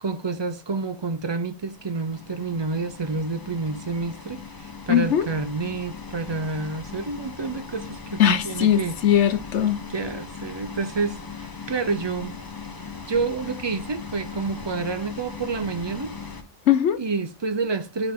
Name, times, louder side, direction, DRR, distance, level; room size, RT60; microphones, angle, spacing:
voice 1, 0.0-9.0 9.9-12.4 13.1-16.1 17.0-18.1, right 4 dB, 35° right, 0.4 m, -29 dB
sound 1, 1.6-16.4, left 5 dB, 20° left, 0.8 m, -39 dB
voice 2, 4.9-5.3 8.2-9.8 16.7-17.0, left 10 dB, 70° left, 1.1 m, -20 dB
11.5 x 3.8 x 3.6 m
omnidirectional pair, 1.3 m